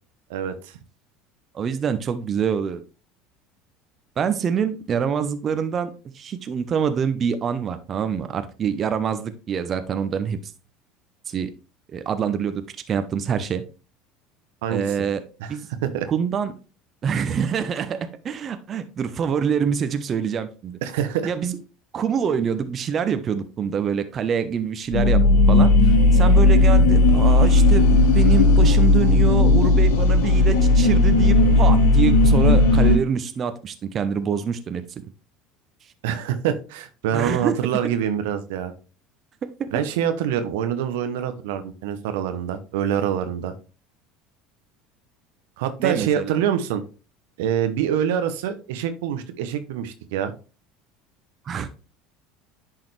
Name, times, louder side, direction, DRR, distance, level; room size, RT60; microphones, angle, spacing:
voice 1, 0.3-0.8 14.6-14.9 15.4-15.5 15.8-16.1 20.8-21.3 36.0-38.7 39.7-43.5 45.6-46.8 47.4-50.3, right 9 dB, 75° right, 9 dB, 0.9 m, -25 dB
voice 2, 1.5-2.8 4.2-5.9 6.1-10.4 11.3-11.5 11.9-12.6 12.9-13.6 14.7-15.2 15.5-15.7 16.1-16.5 17.0-20.8 21.2-21.6 21.9-25.2 25.5-34.8 37.1-37.6 39.4-39.8 45.8-46.4 51.5-51.7, right 7 dB, 40° right, 10 dB, 0.8 m, -25 dB
sound 1, 24.9-33.0, left 2 dB, 70° left, 1.2 m, -15 dB
10.5 x 3.9 x 3.3 m, 0.34 s
hypercardioid pair, 75°, 0 cm